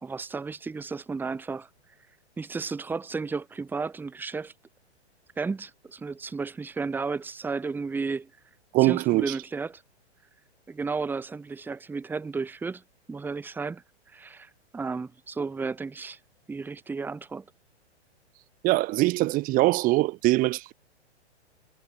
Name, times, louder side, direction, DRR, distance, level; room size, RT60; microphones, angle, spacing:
voice 1, 0.0-1.7 2.4-4.5 5.4-8.3 8.8-9.8 10.7-12.8 13.1-16.2 16.5-17.4, right 4 dB, 5° right, 1.2 m, -33 dB
voice 2, 8.7-9.3 18.6-20.7, right 19 dB, 25° right, 1.8 m, -22 dB
figure-of-eight pair, 110°, 34 cm